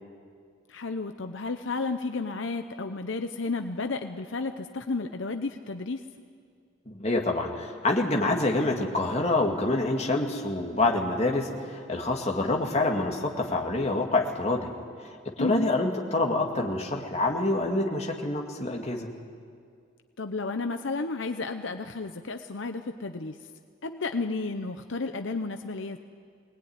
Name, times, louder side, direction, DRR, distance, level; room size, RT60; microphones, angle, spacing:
voice 1, 0.7-6.0 15.4-15.7 20.2-23.4 23.8-26.0, left 3 dB, 70° left, 7 dB, 0.8 m, -32 dB
voice 2, 6.9-14.7 15.3-19.1, left 2 dB, 30° left, 1 dB, 2.2 m, -26 dB
22.0 x 19.5 x 9.6 m, 2.2 s
head